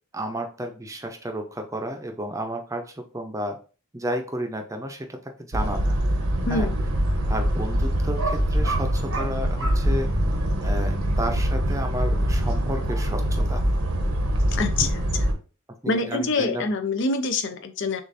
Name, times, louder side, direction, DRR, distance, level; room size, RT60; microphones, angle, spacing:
voice 1, 0.1-3.6 3.9-6.0 6.5-6.7 7.3-10.1 10.6-13.6 14.8-14.9 15.8-16.7, right 1 dB, 15° right, 4 dB, 0.6 m, -32 dB
sound 1, 5.5-15.3, equal, 80° right, 1.1 m, -24 dB
voice 2, 6.5-6.8 14.5-15.0 15.9-18.0, left 3 dB, 55° left, 9 dB, 0.6 m, -25 dB
6.5 x 2.5 x 2.6 m, 0.36 s
head